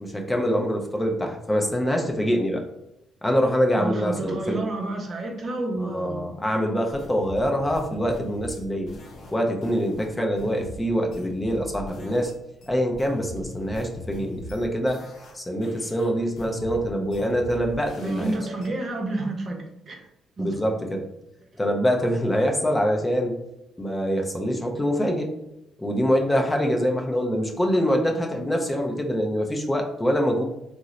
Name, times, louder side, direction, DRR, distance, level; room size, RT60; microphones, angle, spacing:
voice 1, 0.0-2.6 3.2-4.6 5.8-8.9 9.3-12.3 12.7-15.0 15.3-18.4 20.4-21.1 21.6-23.4 23.8-25.3 25.8-30.4, equal, 15° left, 2 dB, 0.5 m, -24 dB
voice 2, 3.8-6.2 18.0-20.0 20.4-20.6, right 2 dB, 45° right, 2 dB, 0.7 m, -29 dB
sound 1, 7.0-12.4 12.6-15.4 15.6-18.7, left 1 dB, 65° left, 0.7 m, -41 dB
2.8 x 2.0 x 3.7 m, 0.89 s
cardioid pair, 90°, 0 cm